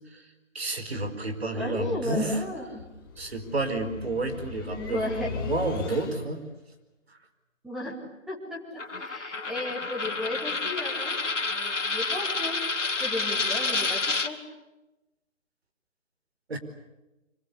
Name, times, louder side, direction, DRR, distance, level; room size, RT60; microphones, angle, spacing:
voice 1, 0.5-2.4 3.2-6.4 7.1-7.2 16.5-16.6, right 2 dB, 55° right, 8 dB, 4.8 m, -30 dB
sound 1, 0.9-6.5, left 4 dB, 15° left, 2.1 m, -39 dB
voice 2, 1.5-2.8 4.8-5.3 7.6-8.0 8.3-11.2 11.4-12.6 13.0-14.4, left 2 dB, ahead, -3 dB, 2.4 m, -34 dB
Coin (dropping), 8.8-14.3, left 3 dB, 70° left, 2.4 m, -29 dB
26.0 x 24.5 x 8.4 m, 1.0 s
figure-of-eight pair, 160°, 38 cm